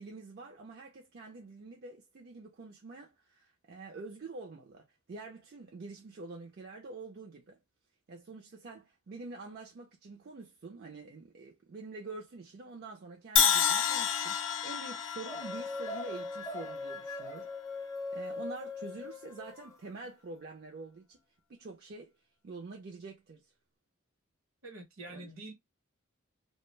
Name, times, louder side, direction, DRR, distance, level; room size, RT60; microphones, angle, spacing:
voice 1, 0.0-7.6 8.1-17.8 18.1-21.2 21.5-22.1 22.4-23.5 25.1-25.3, right 3 dB, 50° right, 0.4 m, -46 dB
Crash cymbal, 13.4-17.4, left 8 dB, 60° left, 0.5 m, -30 dB
sound 1, 15.3-19.7, left 2 dB, 15° left, 0.5 m, -40 dB
voice 2, 24.6-25.5, right 2 dB, 65° right, 0.9 m, -46 dB
2.3 x 2.1 x 3.0 m
head